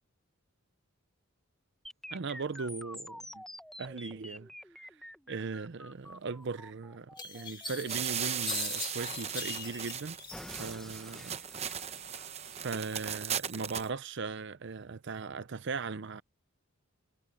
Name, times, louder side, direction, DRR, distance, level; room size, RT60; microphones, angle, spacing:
sound 1, 1.8-9.8 10.3-12.9, equal, ahead, 1.1 m, -49 dB
voice 1, 2.1-3.4 3.8-4.5 4.9-5.0 5.3-10.2 10.6-11.4 12.5-16.2, right 4 dB, 55° right, 0.6 m, -38 dB
sound 2, 6.4-6.5 7.2-10.8 11.2-11.9, left 6 dB, 20° left, 2.1 m, -41 dB
sound 3, 7.9-13.9, right 8 dB, 30° right, 0.8 m, -37 dB
head